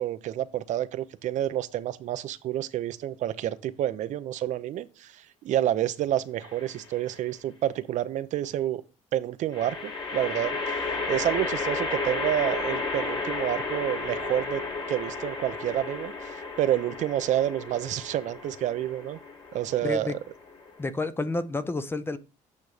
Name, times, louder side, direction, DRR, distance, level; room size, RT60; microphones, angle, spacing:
voice 1, 0.0-8.8 9.1-10.8 11.1-14.6 14.9-19.2 19.5-20.1, right 12 dB, 65° right, 0.5 m, -29 dB
sound 1, 6.4-7.0 9.5-20.9, left 3 dB, 35° left, 1.7 m, -33 dB
voice 2, 19.8-20.2 20.8-22.2, left 3 dB, 15° left, 0.6 m, -30 dB
8.4 x 3.1 x 4.9 m
cardioid pair, 110°, 14 cm